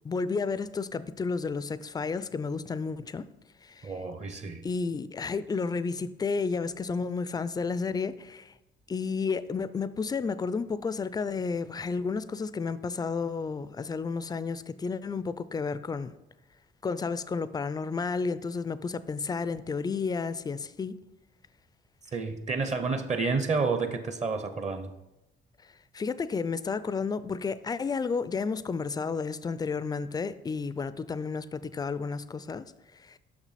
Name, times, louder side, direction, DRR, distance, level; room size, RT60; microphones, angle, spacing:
voice 1, 0.0-3.3 3.6-3.9 4.6-8.5 8.9-16.1 16.8-21.0 25.9-33.2, left 4 dB, 20° left, 0.3 m, -32 dB
voice 2, 3.8-4.6 22.1-24.9, right 4 dB, 35° right, 0.7 m, -30 dB
6.1 x 6.0 x 4.1 m
cardioid pair, 90°, 20 cm